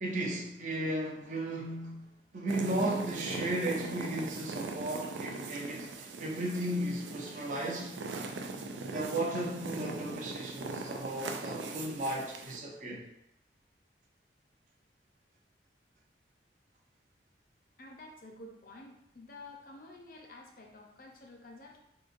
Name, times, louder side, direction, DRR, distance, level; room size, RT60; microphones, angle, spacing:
voice 1, 0.0-8.0 8.9-13.0, right 1 dB, 45° right, -2 dB, 0.6 m, -35 dB
sound 1, 2.5-12.6, right 3 dB, 90° right, 0.4 m, -40 dB
voice 2, 17.8-21.8, left 2 dB, 50° left, 1 dB, 0.6 m, -50 dB
3.8 x 2.6 x 2.5 m, 0.82 s
head